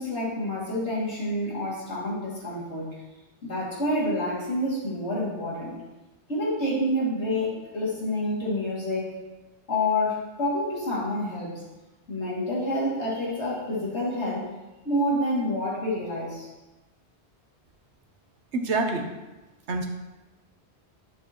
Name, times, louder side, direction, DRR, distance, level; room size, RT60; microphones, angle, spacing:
voice 1, 0.0-2.9 3.4-5.8 6.3-9.1 9.7-11.5 12.1-14.5 14.8-16.5, left 1 dB, 80° left, -7 dB, 3.1 m, -28 dB
voice 2, 18.5-19.1 19.7-19.9, right 3 dB, 80° right, 4 dB, 1.3 m, -26 dB
11.5 x 6.6 x 3.1 m, 1.1 s
omnidirectional pair, 1.1 m